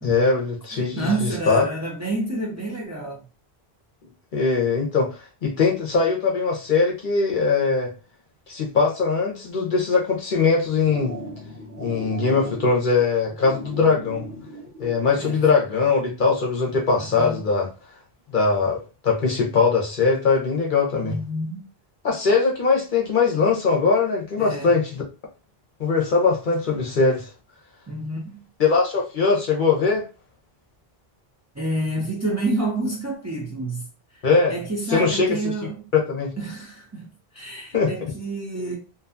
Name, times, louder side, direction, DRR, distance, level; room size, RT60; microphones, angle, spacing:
voice 1, 0.0-1.7 4.3-7.9 8.5-11.1 11.8-14.3 14.8-17.7 18.3-21.2 22.0-25.0 25.8-27.3 28.6-30.0 34.2-34.5 34.9-35.5 35.9-36.3 37.7-37.9, left 4 dB, 55° left, 0.8 m, -21 dB
voice 2, 0.7-3.2 15.2-15.7 17.0-17.4 21.0-21.6 24.4-24.7 27.9-28.4 31.5-33.9 34.1-35.8 36.4-38.8, right 2 dB, 20° right, 0.6 m, -29 dB
sound 1, 10.7-15.4, equal, 60° right, 1.0 m, -38 dB
2.6 x 2.2 x 2.5 m
omnidirectional pair, 1.0 m